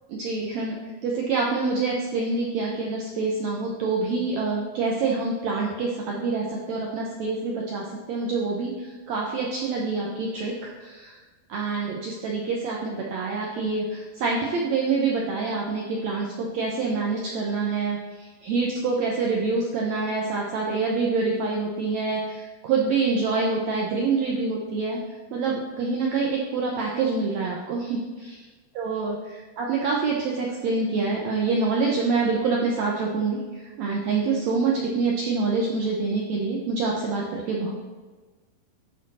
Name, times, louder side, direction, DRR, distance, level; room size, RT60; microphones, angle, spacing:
voice 1, 0.1-0.8 1.0-11.2 11.5-28.4 28.7-37.7, right 4 dB, 80° right, -2 dB, 1.5 m, -26 dB
11.0 x 4.4 x 4.2 m, 1.3 s
omnidirectional pair, 4.3 m